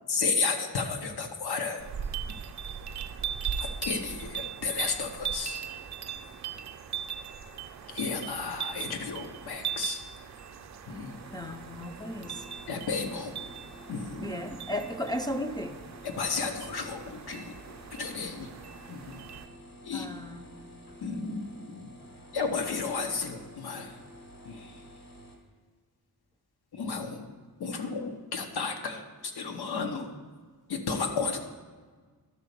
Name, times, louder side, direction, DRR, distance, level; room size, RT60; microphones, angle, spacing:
voice 1, 0.1-1.8 3.6-5.6 7.9-10.0 10.9-11.2 12.7-13.4 13.9-14.4 16.0-17.5 17.9-18.5 18.9-19.3 19.8-20.1 21.0-21.9 22.3-24.0 24.4-24.8 26.7-27.3 27.6-30.1 30.7-31.4, left 4 dB, 75° left, 5 dB, 1.1 m, -33 dB
sound 1, 1.8-19.5, right 8 dB, 45° right, 0.6 m, -39 dB
sound 2, 11.1-25.4, equal, 60° left, 1.7 m, -51 dB
voice 2, 11.3-12.5 14.2-15.8 19.9-20.4, left 1 dB, 10° left, 2 dB, 0.4 m, -35 dB
12.0 x 4.1 x 6.8 m, 1.5 s
wide cardioid pair, 140°, 39 cm